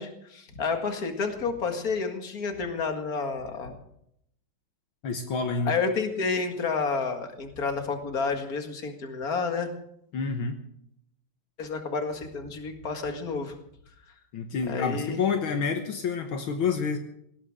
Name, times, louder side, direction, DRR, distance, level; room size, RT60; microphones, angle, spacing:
voice 1, 0.0-3.8 5.7-9.7 11.6-13.5 14.7-15.2, left 4 dB, 45° left, 5 dB, 2.4 m, -30 dB
voice 2, 5.0-5.8 10.1-10.6 14.3-17.0, left 5 dB, 70° left, 5 dB, 2.0 m, -28 dB
18.5 x 18.0 x 3.7 m, 0.72 s
omnidirectional pair, 2.3 m